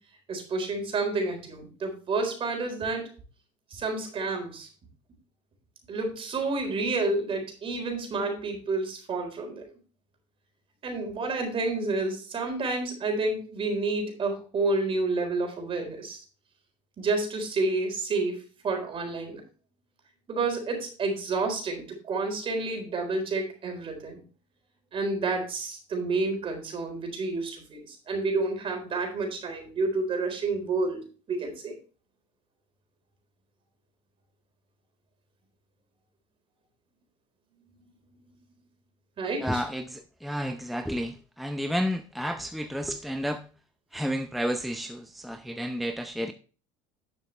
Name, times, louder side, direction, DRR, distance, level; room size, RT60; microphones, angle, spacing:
voice 1, 0.3-3.1 3.7-4.7 5.9-9.6 10.8-16.2 17.0-19.4 20.3-24.2 24.9-31.0 31.3-31.8 39.2-39.6, right 3 dB, 35° right, 4.0 m, -29 dB
voice 2, 39.4-43.5 43.9-46.3, equal, ahead, 0.6 m, -31 dB
11.0 x 6.6 x 3.3 m
supercardioid pair, 110°, 15 cm